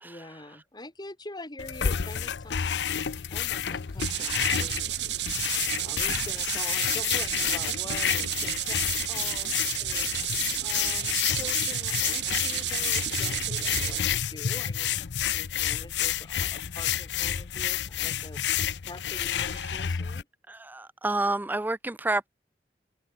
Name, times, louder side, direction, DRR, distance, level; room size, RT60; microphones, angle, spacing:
voice 1, 0.0-2.8 3.3-18.4 18.8-20.3, left 2 dB, 25° left, 2.6 m, -45 dB
sound 1, 1.6-20.2, left 9 dB, 80° left, 0.6 m, -30 dB
sound 2, 4.0-14.0, right 14 dB, 80° right, 0.9 m, -32 dB
voice 2, 20.5-22.3, right 2 dB, 10° right, 0.4 m, -29 dB
head